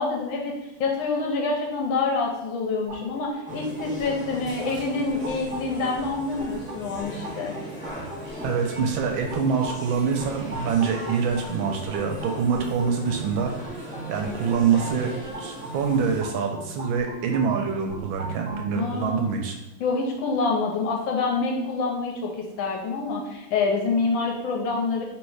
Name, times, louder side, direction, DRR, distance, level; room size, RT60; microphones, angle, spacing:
voice 1, 0.0-7.5 18.7-19.4 19.8-25.0, left 4 dB, 70° left, 0 dB, 1.4 m, -27 dB
sound 1, 2.9-18.6, right 2 dB, 35° right, 1.0 m, -39 dB
sound 2, 3.5-16.2, equal, 5° left, 0.7 m, -39 dB
voice 2, 8.4-13.8 14.1-15.1 15.4-19.6, right 6 dB, 75° right, 3 dB, 1.3 m, -25 dB
3.1 x 3.1 x 4.7 m, 1.0 s
omnidirectional pair, 2.4 m